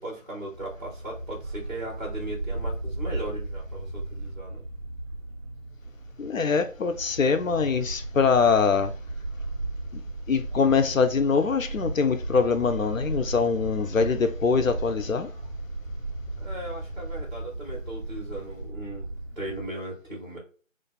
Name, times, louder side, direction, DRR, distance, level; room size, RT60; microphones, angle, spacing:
voice 1, 0.0-4.6 16.4-19.1 19.4-20.4, right 1 dB, 35° right, 0.9 m, -37 dB
Bark, 0.5-19.7, right 2 dB, 65° right, 1.0 m, -35 dB
voice 2, 6.2-8.9 9.9-10.0 10.3-15.3, left 5 dB, 80° left, 0.6 m, -23 dB
2.4 x 2.3 x 3.8 m
figure-of-eight pair, 170°, 39 cm